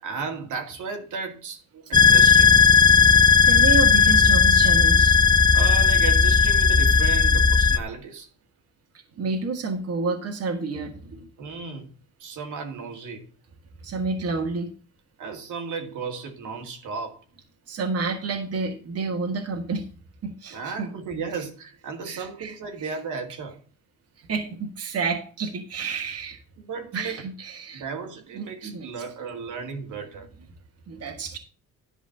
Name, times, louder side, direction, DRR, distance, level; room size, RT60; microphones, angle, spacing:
voice 1, 0.0-2.6 5.5-8.3 11.4-11.9 12.2-13.3 15.2-17.2 20.5-23.6 26.6-27.2 27.7-30.3, right 5 dB, 70° right, 2.3 m, -34 dB
sound 1, 1.9-7.8, left 5 dB, 15° left, 0.7 m, -16 dB
voice 2, 3.5-5.2 9.2-11.3 13.8-14.7 17.7-19.9 20.2-20.9 22.1-22.5 22.8-22.9 24.3-26.4 26.9-27.8 28.3-28.9 30.9-31.4, right 4 dB, 50° right, 1.9 m, -29 dB
11.5 x 5.0 x 6.6 m
cardioid pair, 125°, 32 cm